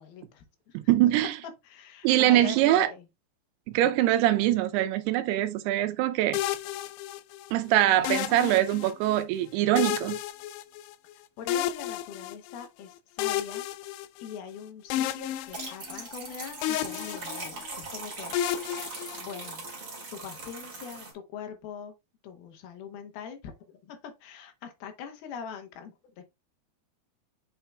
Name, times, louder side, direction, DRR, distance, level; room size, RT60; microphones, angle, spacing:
voice 1, 0.0-0.8 1.6-3.1 7.9-8.1 11.4-13.6 14.2-19.7 20.1-21.9 22.2-26.2, left 7 dB, 75° left, 2.8 m, -42 dB
voice 2, 0.7-1.3 2.0-2.9 3.7-6.4 7.5-10.2, right 13 dB, 85° right, 2.7 m, -23 dB
sound 1, 6.3-7.5 8.0-9.2 9.8-11.1 11.5-12.7 13.2-14.5 14.9-16.3 16.6-17.8 18.3-19.7, left 12 dB, 90° left, 2.6 m, -32 dB
sound 2, 15.3-21.1, right 3 dB, 30° right, 1.9 m, -40 dB
8.0 x 5.6 x 2.3 m
omnidirectional pair, 4.6 m